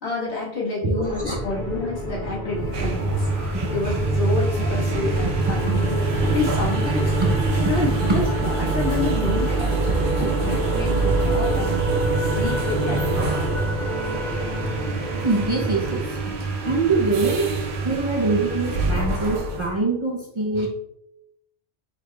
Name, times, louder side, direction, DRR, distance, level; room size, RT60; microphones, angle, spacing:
voice 1, 0.0-3.3 3.7-6.0 6.3-7.1 7.6-10.0 10.4-11.8 12.2-13.5, left 3 dB, 90° left, -5 dB, 1.7 m, -29 dB
voice 2, 0.8-1.4 4.6-4.7 5.2-5.8 7.2-7.3 7.6-7.7 8.1-8.2 10.2-10.4 15.2-16.3 16.6-17.5 17.8-20.7, right 3 dB, 35° right, -2 dB, 0.5 m, -24 dB
sound 1, 1.0-16.0, equal, 45° left, 1.1 m, -29 dB
sound 2, 2.6-19.7, right 3 dB, 75° right, 0.9 m, -25 dB
4.9 x 3.8 x 2.2 m, 0.83 s
omnidirectional pair, 1.1 m